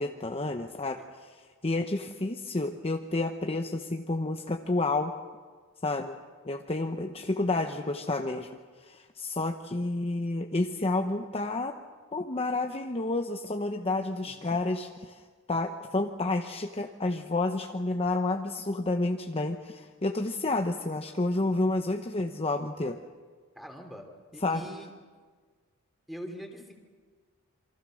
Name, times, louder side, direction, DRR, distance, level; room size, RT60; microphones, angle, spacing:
voice 1, 0.0-5.1 5.8-6.1 6.4-11.8 12.1-23.0 24.4-24.7, left 2 dB, 25° left, 4 dB, 0.9 m, -30 dB
voice 2, 23.5-24.1 24.3-24.9 26.1-26.7, equal, ahead, 3 dB, 3.2 m, -42 dB
28.0 x 24.5 x 6.4 m, 1.5 s
head